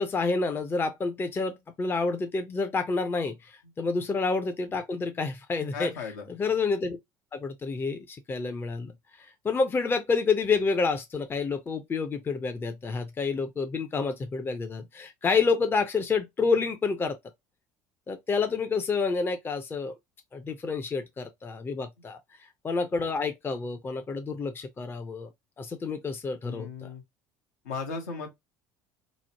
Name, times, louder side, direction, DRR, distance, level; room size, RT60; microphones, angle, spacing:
voice 1, 0.0-5.9 6.3-7.0 7.3-8.9 9.2-17.2 18.1-19.9 20.3-22.2 22.6-25.3 25.6-26.9, left 4 dB, 25° left, 0.5 m, -29 dB
voice 2, 5.7-6.3 26.4-27.0 27.6-28.3, left 5 dB, 80° left, 1.0 m, -36 dB
3.0 x 2.0 x 2.7 m
hypercardioid pair, 70°, 9 cm